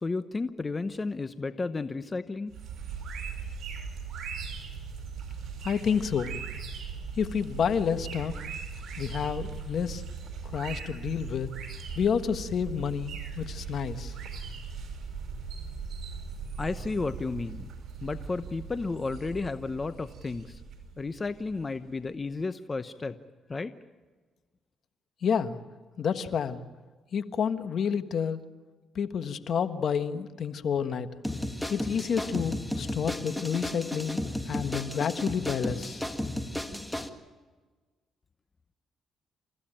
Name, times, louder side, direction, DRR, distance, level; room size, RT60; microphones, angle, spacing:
voice 1, 0.0-2.5 16.6-17.7 18.0-20.6 21.0-23.2 23.5-23.7, left 3 dB, 30° left, 11 dB, 0.9 m, -33 dB
sound 1, 2.5-21.9, right 5 dB, 65° right, 5.7 m, -39 dB
voice 2, 5.6-6.4 7.2-8.5 9.0-10.0 10.4-11.5 11.9-14.1 25.2-25.6 26.0-26.6 27.1-28.4 28.9-31.1 31.7-36.1, left 7 dB, 60° left, 10 dB, 1.4 m, -29 dB
sound 2, 31.2-37.1, left 1 dB, 5° left, 1.9 m, -34 dB
28.5 x 15.5 x 8.9 m, 1.4 s
cardioid pair, 90°, 0 cm